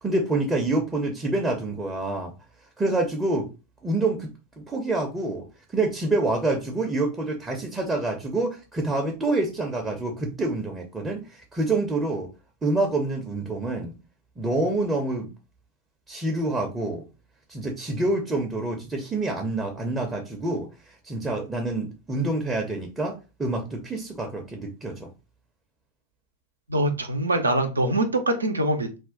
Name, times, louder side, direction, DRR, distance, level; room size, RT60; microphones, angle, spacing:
voice 1, 0.0-2.3 2.8-3.5 3.8-5.5 5.7-12.3 12.6-13.9 14.4-15.3 16.1-17.0 17.5-25.1, right 2 dB, 15° right, 2 dB, 0.6 m, -27 dB
voice 2, 26.7-29.0, right 1 dB, 75° right, 6 dB, 0.5 m, -24 dB
2.4 x 2.2 x 3.7 m, 0.30 s
figure-of-eight pair, 90°, 0 cm